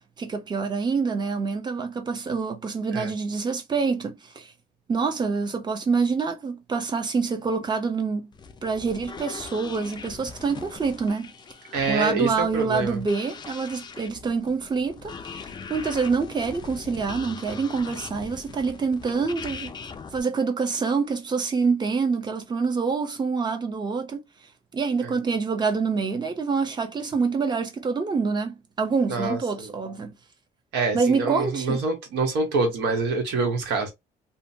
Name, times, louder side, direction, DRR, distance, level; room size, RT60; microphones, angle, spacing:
voice 1, 0.2-4.5 4.9-8.3 8.6-11.3 11.9-19.7 20.1-24.2 24.7-30.1 30.9-31.8, right 5 dB, 25° right, 0.7 m, -26 dB
sound 1, 8.3-20.2, left 5 dB, 25° left, 0.4 m, -41 dB
voice 2, 11.7-13.0 25.0-25.1 29.1-29.7 30.7-33.9, right 3 dB, 80° right, 1.2 m, -26 dB
2.7 x 2.1 x 2.6 m
cardioid pair, 110°, 17 cm